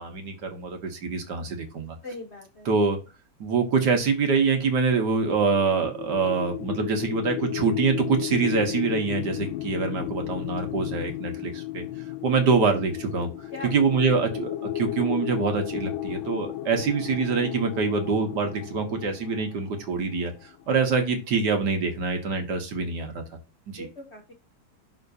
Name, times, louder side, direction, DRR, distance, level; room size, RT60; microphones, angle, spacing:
voice 1, 0.0-2.0 2.7-3.0 3.4-11.8 12.2-13.3 13.6-20.3 20.7-23.2 23.7-23.9, right 5 dB, 60° right, 5 dB, 1.8 m, -25 dB
voice 2, 2.0-2.7 13.5-13.7 23.8-24.3, left 2 dB, 45° left, 1 dB, 0.9 m, -39 dB
sound 1, 5.3-20.3, left 13 dB, 80° left, 1.4 m, -34 dB
11.5 x 3.9 x 2.7 m, 0.29 s
omnidirectional pair, 2.2 m